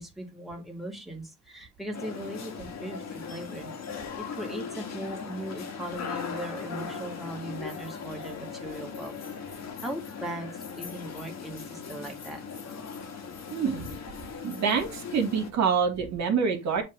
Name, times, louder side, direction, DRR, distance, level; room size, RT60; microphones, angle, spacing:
voice 1, 0.0-3.7 4.2-9.2 9.4-12.4, right 1 dB, ahead, 0 dB, 2.4 m, -39 dB
sound 1, 1.9-15.5, left 6 dB, 60° left, 1.8 m, -39 dB
voice 2, 13.5-13.9 14.4-16.8, right 6 dB, 65° right, 3 dB, 2.1 m, -26 dB
7.4 x 3.4 x 4.7 m, 0.23 s
cardioid pair, 90°, 30 cm